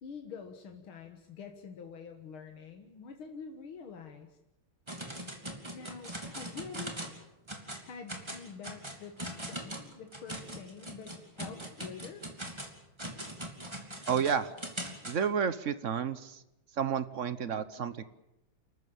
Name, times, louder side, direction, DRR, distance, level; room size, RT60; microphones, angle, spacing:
voice 1, 0.0-4.3 5.7-6.9 7.8-12.3, left 5 dB, 90° left, 4 dB, 2.5 m, -46 dB
sound 1, 4.9-7.2 7.5-15.2, right 1 dB, 15° right, 2.8 m, -41 dB
voice 2, 14.1-14.5 15.0-16.4 16.8-18.0, right 7 dB, 50° right, 14 dB, 1.0 m, -31 dB
29.5 x 13.5 x 8.8 m, 0.88 s
omnidirectional pair, 2.2 m